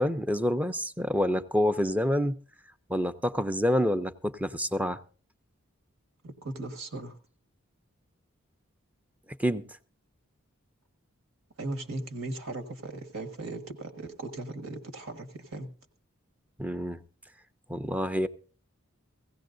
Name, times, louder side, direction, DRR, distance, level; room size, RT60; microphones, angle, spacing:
voice 1, 0.0-2.3 2.9-5.0 9.4-9.6 16.6-17.0 17.7-18.3, equal, 5° right, 0.5 m, -27 dB
voice 2, 6.2-7.2 11.6-15.7, right 2 dB, 75° right, 1.5 m, -38 dB
17.0 x 16.0 x 2.6 m
head